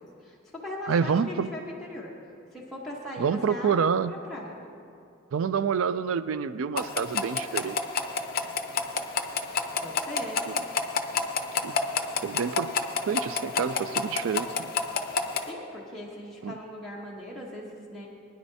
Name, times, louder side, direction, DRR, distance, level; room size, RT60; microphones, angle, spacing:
voice 1, 0.0-2.1 2.5-3.8 4.1-4.6 9.8-10.4 15.4-18.1, left 1 dB, ahead, -7 dB, 1.1 m, -39 dB
voice 2, 0.9-1.5 3.2-4.1 5.3-7.8 10.5-10.6 11.6-11.7 12.2-12.7 13.0-14.7 16.4-16.6, right 6 dB, 80° right, 13 dB, 0.4 m, -27 dB
sound 1, 6.8-15.5, left 5 dB, 45° left, 0.6 m, -30 dB
20.0 x 10.0 x 2.7 m, 2.6 s
head